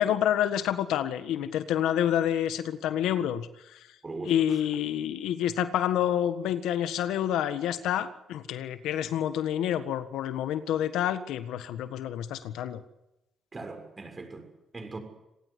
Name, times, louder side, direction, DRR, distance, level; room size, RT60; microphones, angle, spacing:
voice 1, 0.0-3.5 4.2-12.8, left 10 dB, 90° left, 1.5 m, -28 dB
voice 2, 4.0-4.6 13.5-14.4 14.7-15.0, right 3 dB, 30° right, 6.8 m, -40 dB
26.5 x 17.5 x 8.3 m
cardioid pair, 90°, 0 cm